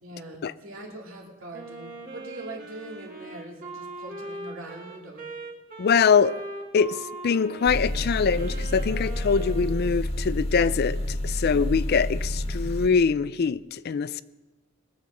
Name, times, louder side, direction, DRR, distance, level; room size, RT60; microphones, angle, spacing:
voice 1, 0.0-5.3, right 1 dB, 80° right, 2.7 m, -42 dB
Wind instrument woodwind instrument, 1.5-10.0, right 2 dB, 45° right, 2.4 m, -41 dB
voice 2, 5.8-6.3 6.7-7.0 7.2-14.2, left 5 dB, 50° left, 0.4 m, -23 dB
sound 1, 7.7-12.9, left 1 dB, 30° left, 1.7 m, -29 dB
21.0 x 7.8 x 6.3 m
head